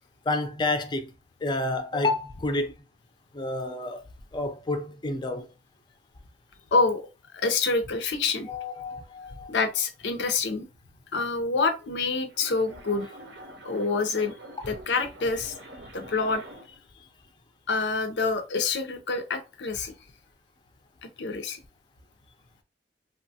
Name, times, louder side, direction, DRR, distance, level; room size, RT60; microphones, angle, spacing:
voice 1, 0.3-1.1 1.4-2.7 3.3-4.0 4.3-5.5 8.5-9.5, left 2 dB, 25° left, 0.4 m, -29 dB
voice 2, 6.7-7.0 7.3-8.5 9.5-10.6 11.1-13.1 13.6-14.3 14.7-15.5 15.9-16.4 17.7-19.9 21.2-21.6, left 4 dB, 75° left, 0.5 m, -26 dB
sound 1, 11.9-16.8, equal, 70° right, 0.7 m, -46 dB
3.0 x 2.2 x 2.7 m
head